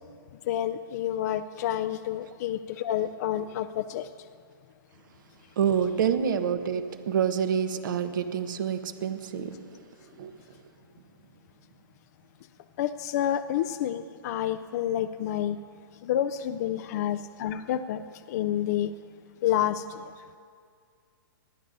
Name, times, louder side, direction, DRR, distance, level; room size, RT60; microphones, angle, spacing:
voice 1, 0.5-4.1 12.8-15.6 16.0-18.9 19.4-20.1, left 11 dB, 50° left, 8 dB, 0.4 m, -29 dB
voice 2, 5.6-9.6 10.2-10.3, right 8 dB, 60° right, 9 dB, 1.1 m, -27 dB
30.0 x 10.5 x 2.6 m, 2.2 s
hypercardioid pair, 140°, 12 cm